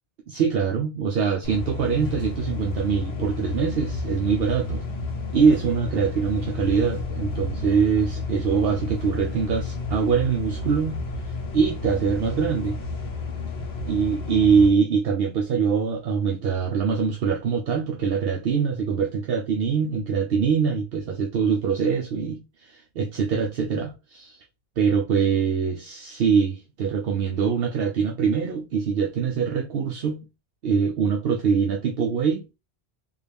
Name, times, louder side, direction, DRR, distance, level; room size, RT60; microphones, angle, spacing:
voice 1, 0.3-4.8 5.3-11.0 11.3-12.8 13.9-24.4 24.8-30.3 30.6-32.4, right 6 dB, 70° right, 0.9 m, -23 dB
sound 1, 1.4-14.7, left 3 dB, 85° left, 1.1 m, -31 dB
3.6 x 2.4 x 3.4 m
omnidirectional pair, 1.0 m